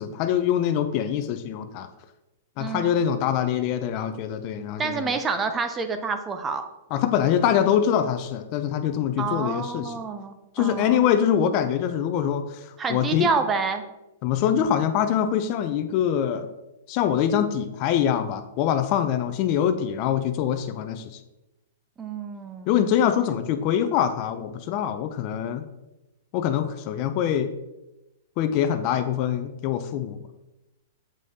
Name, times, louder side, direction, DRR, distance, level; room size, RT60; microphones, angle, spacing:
voice 1, 0.0-1.9 2.6-5.2 6.9-9.9 10.6-13.3 14.2-16.5 16.9-21.1 22.7-25.6 26.3-27.5 28.4-30.2, left 9 dB, 40° left, 10 dB, 0.5 m, -24 dB
voice 2, 2.6-3.0 4.8-6.7 9.2-11.0 12.8-13.8 22.0-22.7, right 5 dB, 15° right, 8 dB, 0.5 m, -28 dB
7.5 x 4.9 x 2.7 m, 0.98 s
hypercardioid pair, 140°, 0 cm